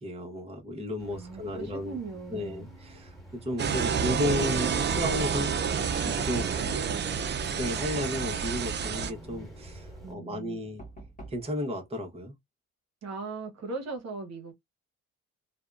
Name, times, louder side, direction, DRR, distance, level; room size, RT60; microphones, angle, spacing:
voice 1, 0.0-2.0 2.3-3.1 3.4-5.5 6.0-6.4 7.6-10.8 11.3-12.3, left 1 dB, 20° right, 0.9 m, -33 dB
sound 1, 1.0-10.1, equal, ahead, 1.5 m, -48 dB
voice 2, 1.1-2.7 6.4-6.8 10.0-10.7 13.0-14.5, right 3 dB, 60° right, 0.9 m, -39 dB
sound 2, 3.6-9.1, right 6 dB, 35° right, 0.4 m, -29 dB
Knock, 7.8-8.5 10.8-11.5, equal, 25° left, 1.2 m, -44 dB
2.7 x 2.1 x 2.3 m
cardioid pair, 90°, 30 cm